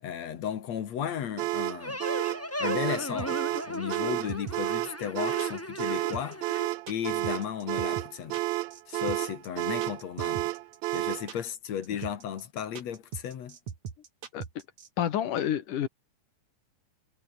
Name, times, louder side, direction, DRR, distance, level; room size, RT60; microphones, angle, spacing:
voice 1, 0.0-2.0 2.6-3.4 3.7-6.6 6.9-8.4 8.9-10.5 10.9-13.6, left 9 dB, 60° left, 2.8 m, -35 dB
sound 1, 1.4-11.3, right 18 dB, 80° right, 1.7 m, -31 dB
sound 2, 1.8-6.7, left 1 dB, 5° left, 1.4 m, -37 dB
sound 3, 3.2-14.9, right 7 dB, 65° right, 4.1 m, -40 dB
voice 2, 15.0-15.9, left 10 dB, 80° left, 3.3 m, -28 dB
omnidirectional pair, 3.6 m